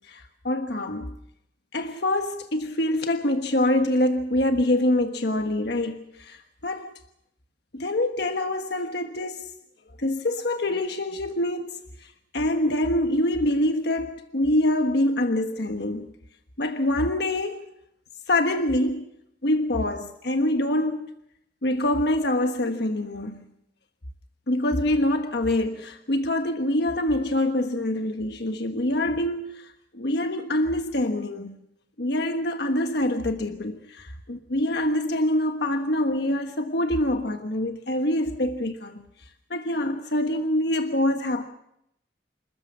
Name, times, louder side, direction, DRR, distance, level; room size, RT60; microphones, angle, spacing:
voice 1, 0.1-1.1 1.7-6.4 6.6-7.0 7.7-9.4 10.0-11.8 12.3-16.1 16.6-17.6 18.3-19.1 19.4-21.1 21.6-23.4 24.5-29.5 29.9-31.6 32.0-39.0 39.5-41.5, left 1 dB, 65° left, 1.4 m, -25 dB
27.5 x 14.0 x 7.2 m
head